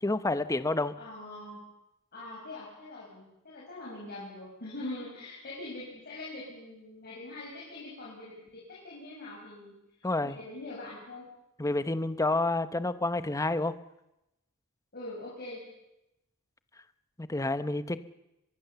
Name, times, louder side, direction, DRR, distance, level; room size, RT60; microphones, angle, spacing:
voice 1, 0.0-0.9 10.0-10.4 11.6-13.8 17.2-18.0, left 2 dB, 15° left, 12 dB, 0.8 m, -29 dB
voice 2, 1.0-1.6 2.1-9.7 10.3-11.2 14.9-15.6, left 2 dB, 45° left, -5 dB, 6.3 m, -43 dB
24.5 x 21.5 x 6.9 m, 0.92 s
head